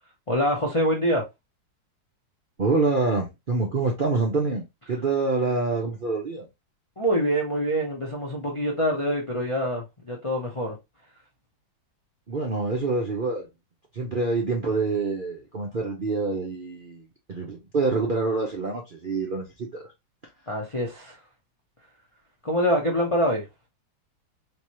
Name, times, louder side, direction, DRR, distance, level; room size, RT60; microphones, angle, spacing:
voice 1, 0.3-1.2 7.0-10.8 20.5-21.2 22.4-23.4, equal, 45° left, 0.4 m, -25 dB
voice 2, 2.6-6.5 12.3-13.5 13.9-19.8, right 3 dB, 60° right, 0.5 m, -26 dB
3.5 x 3.0 x 3.0 m
omnidirectional pair, 2.0 m